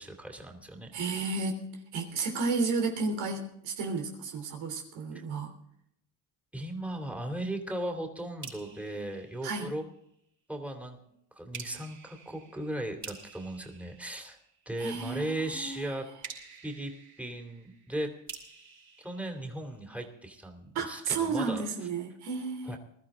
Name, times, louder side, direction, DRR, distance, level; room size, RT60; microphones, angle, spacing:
voice 1, 0.0-0.9 1.2-1.3 6.5-9.8 10.5-11.0 11.3-14.4 14.7-16.1 16.6-16.9 17.2-18.1 19.0-21.7 22.6-22.8, right 1 dB, 5° right, 2 dB, 2.8 m, -37 dB
voice 2, 0.9-1.6 1.9-5.5 9.4-9.7 14.8-15.9 20.7-22.8, right 4 dB, 90° right, 4 dB, 3.3 m, -32 dB
sound 1, 8.4-10.1 11.5-14.9 16.2-20.1, right 5 dB, 40° right, 5.6 m, -49 dB
21.0 x 13.5 x 3.7 m, 0.73 s
cardioid pair, 100°, 45 cm